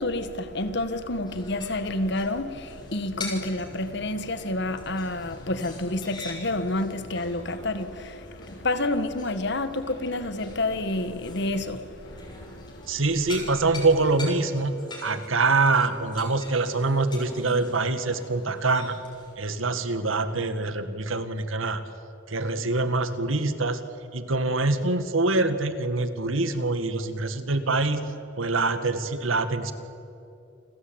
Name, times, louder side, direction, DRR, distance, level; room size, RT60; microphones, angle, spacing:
voice 1, 0.0-13.0, left 2 dB, 60° left, 10 dB, 1.8 m, -29 dB
sound 1, 1.2-19.3, left 2 dB, 25° left, 6.3 m, -44 dB
voice 2, 12.9-14.7 15.0-19.0 19.4-21.8 22.3-23.8 24.1-28.0 28.4-29.7, right 3 dB, 85° right, 10 dB, 2.0 m, -25 dB
29.0 x 21.5 x 9.0 m, 2.8 s
head